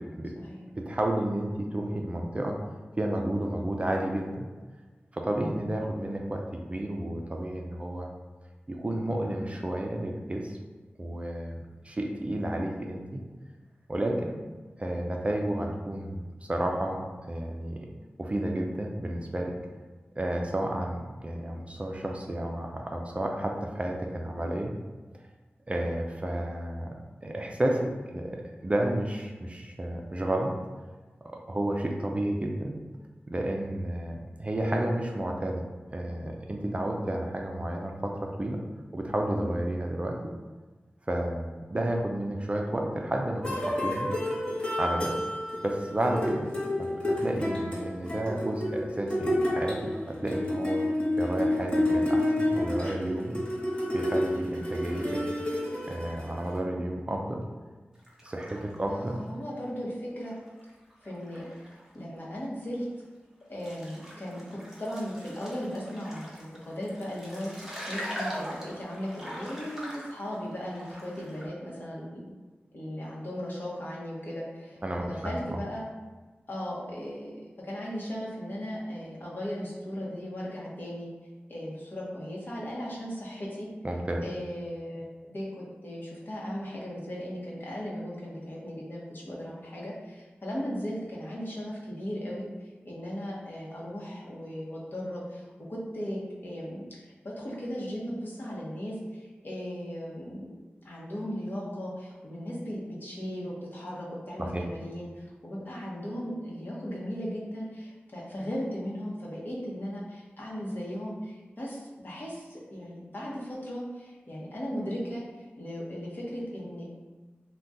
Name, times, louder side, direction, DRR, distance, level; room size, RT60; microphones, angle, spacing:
voice 1, 0.0-0.3 0.8-2.6 3.0-4.5 5.1-8.1 8.7-10.6 11.0-13.2 13.9-14.3 14.8-17.8 18.2-19.5 20.2-24.7 25.7-26.9 27.2-30.5 31.5-32.8 33.3-35.6 35.9-38.6 38.9-40.2 41.1-43.4 43.8-44.1 44.8-45.1 45.6-46.5 46.8-50.8 51.2-53.4 53.9-55.2 55.9-57.4 58.2-59.2 74.8-75.6 83.8-84.2 104.4-104.6, right 1 dB, 30° right, 1 dB, 0.4 m, -31 dB
sound 1, 43.4-56.6, left 1 dB, 25° left, 0.9 m, -30 dB
sound 2, 58.0-59.8 60.2-61.9 62.2-62.3 63.0-63.1 63.5-71.5, equal, 10° right, 0.8 m, -42 dB
voice 2, 58.9-60.3 61.0-61.4 61.9-62.9 63.5-72.2 72.7-75.9 76.5-81.1 81.5-83.7 84.2-95.4 95.7-100.6 100.8-116.9, equal, 55° left, -5 dB, 0.9 m, -37 dB
2.7 x 2.2 x 3.5 m, 1.3 s
wide cardioid pair, 60°, 4 cm